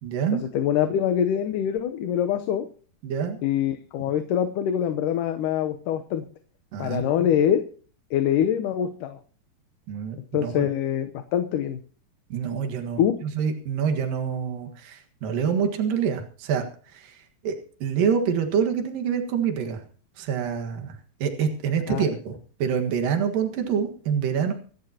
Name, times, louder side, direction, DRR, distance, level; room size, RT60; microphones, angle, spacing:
voice 1, 0.0-0.4 3.0-3.4 6.7-7.3 9.9-10.7 12.3-19.8 20.2-24.5, right 7 dB, 75° right, 4 dB, 3.4 m, -27 dB
voice 2, 0.5-2.7 3.4-6.2 6.8-7.6 8.1-9.2 10.3-11.8 13.0-13.1 21.9-22.1, left 9 dB, 75° left, 7 dB, 2.4 m, -24 dB
25.5 x 11.5 x 2.9 m, 0.42 s
omnidirectional pair, 3.9 m